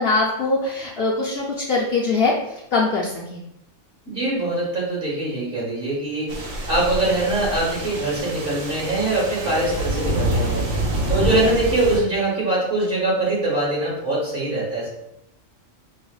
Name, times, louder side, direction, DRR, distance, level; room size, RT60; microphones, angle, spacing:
voice 1, 0.0-2.3 2.7-3.4, left 3 dB, 60° left, -4 dB, 0.6 m, -22 dB
voice 2, 4.1-6.4 6.7-10.6 11.1-14.9, right 2 dB, 45° right, -5 dB, 1.3 m, -23 dB
sound 1, 6.3-12.0, right 1 dB, 70° right, 1.0 m, -26 dB
4.9 x 2.0 x 2.3 m, 0.81 s
omnidirectional pair, 1.3 m